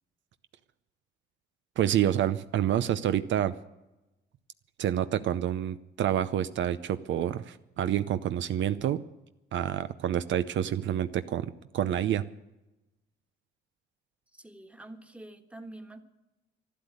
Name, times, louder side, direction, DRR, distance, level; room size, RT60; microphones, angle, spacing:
voice 1, 1.8-3.5 4.8-9.0 9.5-12.2, right 10 dB, 70° right, 12 dB, 0.6 m, -28 dB
voice 2, 14.3-16.0, right 2 dB, 5° right, 6 dB, 1.5 m, -46 dB
12.0 x 11.5 x 9.5 m, 0.98 s
cardioid pair, 90°, 20 cm